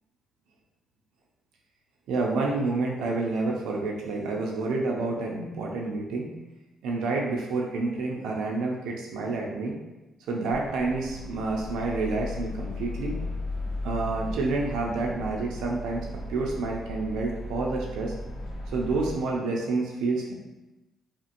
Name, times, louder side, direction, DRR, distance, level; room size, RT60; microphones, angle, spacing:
voice 1, 2.1-6.3 6.8-9.8 10.3-13.2 13.8-18.1 18.7-20.3, right 3 dB, 90° right, -1 dB, 0.4 m, -29 dB
sound 1, 10.5-19.1, left 1 dB, 80° left, 0.7 m, -36 dB
2.8 x 2.4 x 2.5 m, 1.0 s
cardioid pair, 90°, 0 cm